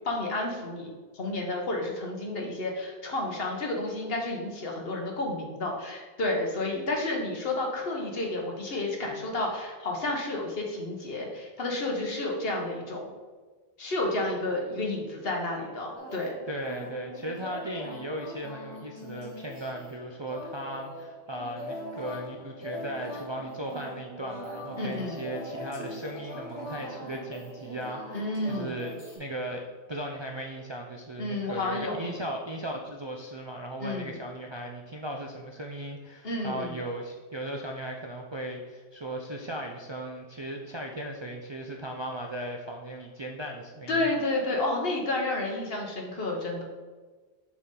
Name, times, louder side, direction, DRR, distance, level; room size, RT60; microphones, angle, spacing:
voice 1, 0.0-13.1 13.8-16.3 24.8-25.2 28.1-28.7 31.2-32.2 33.8-34.1 36.2-36.8 43.9-46.6, left 2 dB, 65° left, 0 dB, 1.4 m, -31 dB
sound 1, 16.0-29.2, equal, 25° left, 1.5 m, -41 dB
voice 2, 16.5-44.1, right 1 dB, 40° right, 0 dB, 0.4 m, -37 dB
6.9 x 4.1 x 3.8 m, 1.4 s
omnidirectional pair, 1.0 m